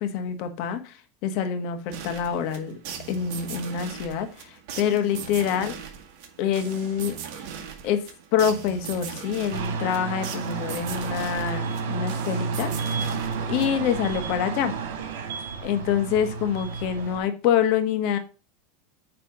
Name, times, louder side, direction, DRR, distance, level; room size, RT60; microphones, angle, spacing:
voice 1, 0.0-2.8 3.1-5.7 6.4-7.4 7.8-8.0 8.3-13.0 13.5-14.7 15.6-18.2, left 8 dB, 55° left, 8 dB, 1.3 m, -26 dB
sound 1, 1.9-14.0, right 8 dB, 55° right, 1.8 m, -39 dB
sound 2, 9.5-17.2, right 5 dB, 80° right, 1.9 m, -31 dB
8.8 x 3.4 x 5.9 m, 0.34 s
supercardioid pair, 140°, 0 cm